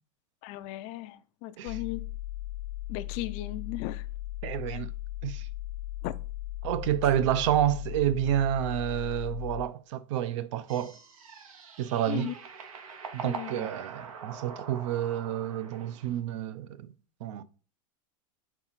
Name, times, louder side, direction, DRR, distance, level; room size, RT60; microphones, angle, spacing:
voice 1, 0.4-2.0 2.9-4.1 6.0-6.1 12.1-12.3 13.2-13.7, left 15 dB, 40° left, 0.4 m, -36 dB
sound 1, 1.7-9.7, left 16 dB, 90° left, 0.7 m, -37 dB
voice 2, 4.4-4.9 5.2-5.5 6.6-11.0 11.8-12.3 13.1-16.9 17.2-17.4, right 11 dB, 60° right, 0.5 m, -29 dB
sound 2, 10.7-16.2, right 6 dB, 90° right, 1.2 m, -44 dB
4.5 x 3.9 x 5.7 m
supercardioid pair, 150°, 17 cm